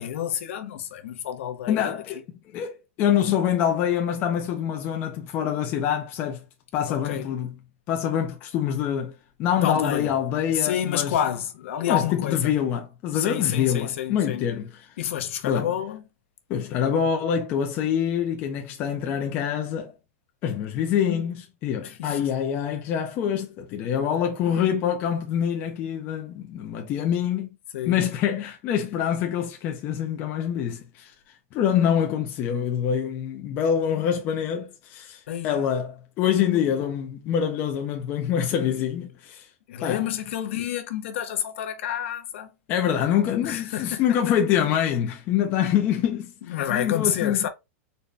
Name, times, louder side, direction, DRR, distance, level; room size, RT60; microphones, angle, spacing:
voice 1, 0.0-2.0 6.9-7.3 9.6-10.2 10.5-12.5 13.1-14.4 15.0-16.0 21.8-22.3 27.7-28.0 35.3-35.6 39.7-42.5 43.4-44.3 46.5-47.5, left 10 dB, 55° left, 0.7 m, -29 dB
voice 2, 1.7-2.2 2.5-2.7 3.0-6.4 6.7-7.5 7.9-9.1 9.4-11.2 11.8-14.7 15.4-15.7 16.5-19.9 20.4-27.5 27.9-31.1 31.5-39.5 39.8-40.1 42.7-47.4, left 9 dB, 25° left, 0.4 m, -25 dB
3.9 x 2.1 x 3.3 m
supercardioid pair, 170°, 8 cm